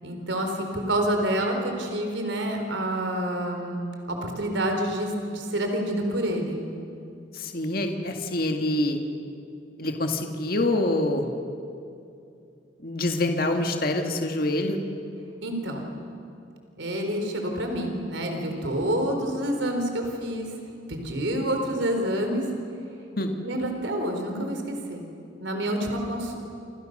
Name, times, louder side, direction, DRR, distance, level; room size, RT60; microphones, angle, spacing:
voice 1, 0.0-3.8 4.1-6.6 15.4-15.9 16.8-20.5 20.9-22.4 23.4-25.0 25.4-26.4, right 1 dB, 90° right, 4 dB, 4.2 m, -28 dB
voice 2, 7.3-9.0 9.8-11.3 12.8-14.8 23.2-23.3, left 2 dB, 50° left, 3 dB, 2.0 m, -26 dB
28.5 x 27.5 x 6.7 m, 2.6 s
head